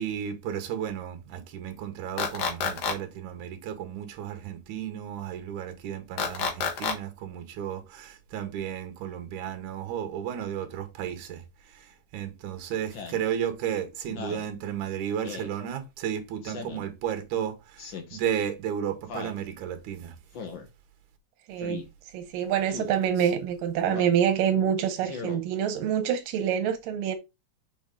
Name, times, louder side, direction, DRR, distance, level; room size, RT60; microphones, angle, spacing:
voice 1, 0.0-11.4 11.7-20.1, right 9 dB, 70° right, 2.6 m, -33 dB
sound 1, 2.2-2.9 6.2-6.9, left 6 dB, 80° left, 3.2 m, -27 dB
Speech synthesizer, 12.9-13.2 14.1-14.5 15.2-15.5 16.4-16.9 17.8-18.2 19.1-19.4 20.3-20.7 21.6-21.8 22.7-22.9 23.8-24.2 25.0-25.4, left 5 dB, 55° left, 1.4 m, -38 dB
voice 2, 21.5-21.8 22.1-27.2, right 9 dB, 85° right, 2.5 m, -26 dB
7.0 x 4.6 x 3.8 m
omnidirectional pair, 3.9 m